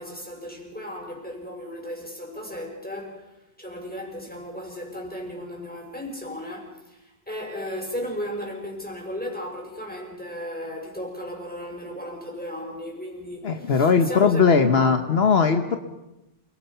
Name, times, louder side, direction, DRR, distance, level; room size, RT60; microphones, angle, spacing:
voice 1, 0.0-3.3 3.6-14.9, equal, 10° left, 5.9 m, -35 dB
voice 2, 13.4-15.8, left 5 dB, 70° left, 1.4 m, -19 dB
29.0 x 22.0 x 5.6 m
omnidirectional pair, 1.1 m